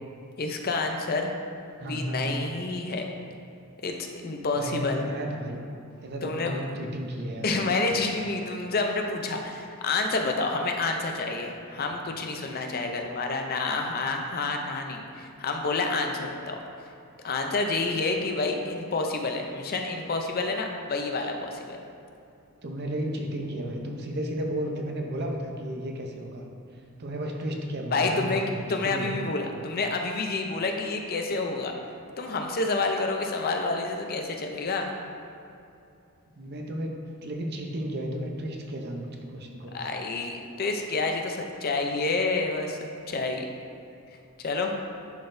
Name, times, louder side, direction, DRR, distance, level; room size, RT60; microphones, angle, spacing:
voice 1, 0.4-1.4 1.8-3.1 3.8-5.0 6.2-6.6 7.4-16.6 17.2-21.8 27.9-28.4 28.7-31.8 32.2-34.9 39.7-42.8 43.1-43.5 44.4-44.7, left 3 dB, 45° left, 3 dB, 0.5 m, -28 dB
voice 2, 1.8-2.4 4.6-5.6 6.0-7.5 22.6-26.4 27.0-29.1 36.3-36.9 37.2-39.8, right 1 dB, 50° right, 2 dB, 0.7 m, -33 dB
10.5 x 4.0 x 2.6 m, 2.6 s
head